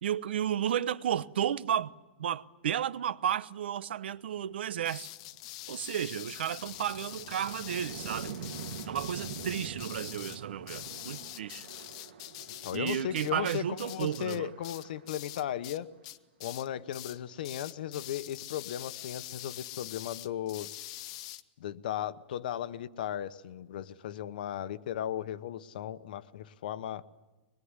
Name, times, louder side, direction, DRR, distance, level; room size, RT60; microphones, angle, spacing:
voice 1, 0.0-1.9 2.2-5.1 5.7-8.3 8.9-11.7 12.7-14.5, right 10 dB, 80° right, 1.0 m, -33 dB
sound 1, 4.7-4.8 5.3-16.0, right 7 dB, 60° right, 2.4 m, -46 dB
sound 2, 4.8-15.8 16.0-16.7 16.9-17.2 17.4-21.4, left 15 dB, 35° left, 0.9 m, -44 dB
voice 2, 12.6-15.9 16.4-20.7 21.6-27.0, left 11 dB, 55° left, 1.1 m, -36 dB
24.0 x 21.5 x 9.8 m
supercardioid pair, 175°, 6 cm